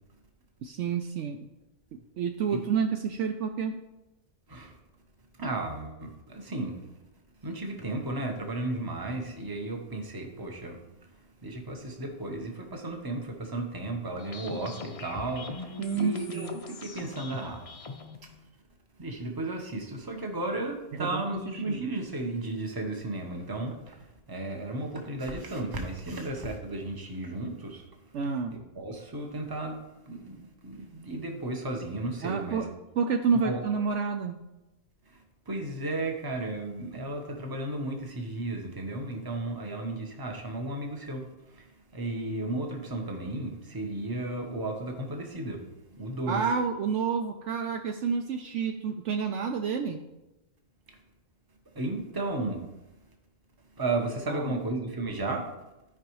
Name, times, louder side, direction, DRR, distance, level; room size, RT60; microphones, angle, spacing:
voice 1, 0.6-1.4 2.2-3.8 15.8-16.6 20.9-21.2 21.7-21.9 28.1-28.7 32.2-34.4 46.3-50.0 54.3-54.6, right 6 dB, 70° right, 5 dB, 0.8 m, -29 dB
voice 2, 5.4-6.8 7.4-11.2 11.4-17.6 18.2-18.3 19.0-28.1 28.7-32.6 33.4-33.6 35.1-35.2 35.5-45.7 46.0-46.4 51.7-52.7 53.8-55.5, right 2 dB, 20° right, 2 dB, 0.9 m, -34 dB
sound 1, 14.2-18.2, left 3 dB, 40° left, 0.5 m, -40 dB
13.5 x 5.0 x 3.1 m, 0.98 s
omnidirectional pair, 1.4 m